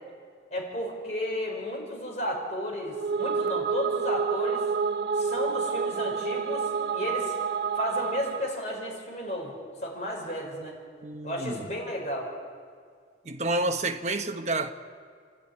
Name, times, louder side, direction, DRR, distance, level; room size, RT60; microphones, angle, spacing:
voice 1, 0.5-4.6 5.1-7.3 7.7-9.5 9.8-10.8 11.2-12.3, left 1 dB, 40° left, 5.2 m, -33 dB
sound 1, 2.9-8.6, right 5 dB, 70° right, 0.5 m, -29 dB
voice 2, 11.0-11.7 13.2-14.7, right 2 dB, 40° right, 1.1 m, -29 dB
29.0 x 12.0 x 9.8 m
head